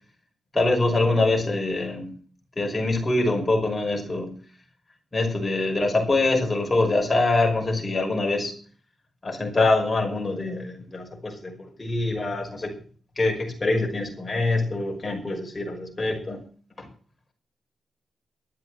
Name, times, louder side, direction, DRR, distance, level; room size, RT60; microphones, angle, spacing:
voice 1, 0.5-2.1 2.6-4.3 5.1-8.5 9.2-12.7 13.2-16.4 16.8-16.9, left 2 dB, 25° left, 1 dB, 5.7 m, -24 dB
12.5 x 7.9 x 7.8 m, 0.41 s
cardioid pair, 105°, 0 cm